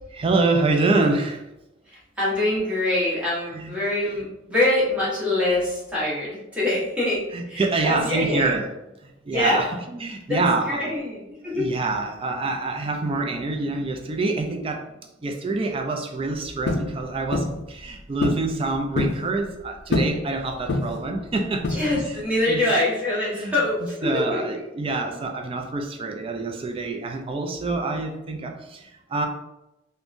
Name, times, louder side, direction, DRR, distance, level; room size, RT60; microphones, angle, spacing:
voice 1, 0.1-1.4 3.5-3.7 7.3-8.7 9.3-9.7 9.9-10.9 11.5-14.9 15.2-21.7 22.0-22.2 22.5-22.6 23.3-23.5 24.0-29.3, right 3 dB, 30° right, 4 dB, 0.3 m, -26 dB
voice 2, 1.9-8.6 9.3-9.7 10.3-11.7 21.7-24.4, left 1 dB, 5° right, -8 dB, 1.0 m, -24 dB
sound 1, 16.7-16.9 17.3-17.6 18.2-18.5 18.7-19.2 19.9-20.2 20.7-21.0 21.6-22.1, left 2 dB, 55° left, 0.4 m, -24 dB
3.5 x 2.1 x 2.5 m, 0.93 s
head